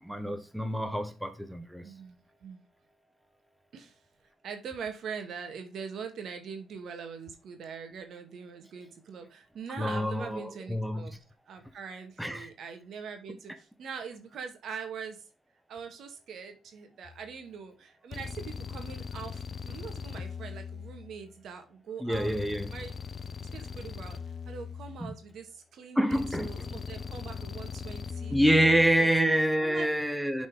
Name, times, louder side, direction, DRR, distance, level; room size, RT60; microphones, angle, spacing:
voice 1, 0.0-1.8 9.8-11.1 12.2-12.5 22.0-22.7 25.0-25.1 26.0-26.5 28.3-30.5, right 1 dB, ahead, 1.0 m, -27 dB
voice 2, 1.8-2.6 3.7-4.0 4.4-11.2 11.5-15.2 15.7-22.3 22.7-23.0 23.5-24.2 24.5-28.4 28.6-29.1 29.6-29.9, right 6 dB, 65° right, 1.7 m, -42 dB
sound 1, 17.0-17.3 18.1-21.4 22.1-25.4 26.1-29.1, left 6 dB, 40° left, 0.6 m, -40 dB
7.4 x 4.3 x 4.9 m
cardioid pair, 90°, 0 cm